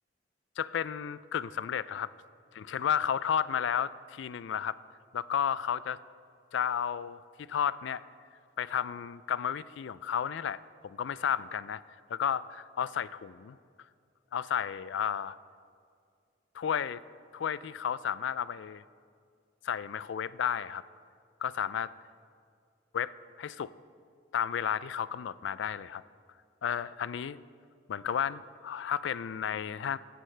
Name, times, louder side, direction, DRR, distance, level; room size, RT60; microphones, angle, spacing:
voice 1, 0.6-2.1 2.5-4.8 5.1-6.0 6.5-8.0 8.6-11.8 12.1-13.6 14.3-15.4 16.5-17.0 17.3-18.8 19.6-20.8 21.4-21.9 22.9-23.7 24.3-26.0 26.6-27.4 27.9-30.0, left 8 dB, 75° left, 17 dB, 0.3 m, -32 dB
17.0 x 13.0 x 3.3 m, 2.2 s
head